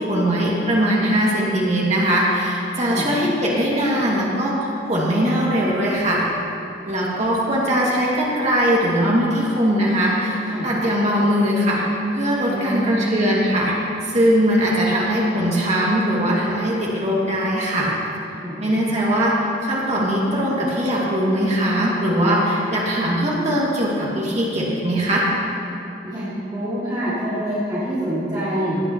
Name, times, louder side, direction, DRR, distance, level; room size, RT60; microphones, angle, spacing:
voice 1, 0.0-6.3 6.9-10.4 10.6-11.8 12.1-13.7 14.0-17.9 18.6-19.3 19.6-25.2, equal, 40° right, -5 dB, 2.3 m, -20 dB
voice 2, 2.8-3.1 10.5-10.7 12.4-13.1 18.4-18.6 26.0-28.8, equal, 25° right, -12 dB, 2.5 m, -26 dB
16.5 x 9.3 x 3.1 m, 2.8 s
head